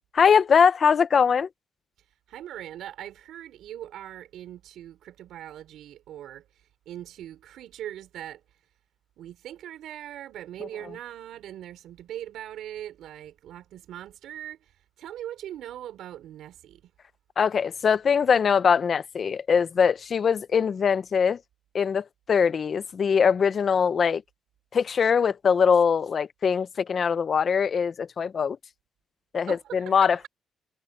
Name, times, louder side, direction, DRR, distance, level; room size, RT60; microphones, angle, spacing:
voice 1, 0.1-1.5 17.4-21.4 21.7-24.2 24.7-28.6 29.3-30.3, left 6 dB, 45° left, 0.7 m, -22 dB
voice 2, 2.3-6.4 6.9-8.4 9.2-14.6 15.0-16.9 29.5-30.3, right 11 dB, 80° right, 4.4 m, -40 dB
cardioid pair, 120°, 0 cm